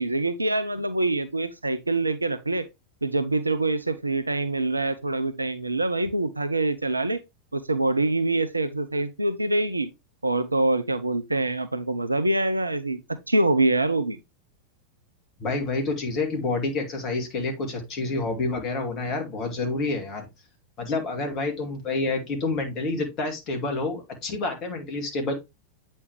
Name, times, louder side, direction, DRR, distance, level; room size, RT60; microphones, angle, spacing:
voice 1, 0.0-2.7 3.0-7.2 7.5-9.9 10.2-13.0 13.3-14.2, right 2 dB, 80° right, 0.5 m, -25 dB
voice 2, 15.4-20.3 20.8-25.3, left 3 dB, 35° left, 2.3 m, -28 dB
8.3 x 4.2 x 3.2 m
figure-of-eight pair, 90°, 0 cm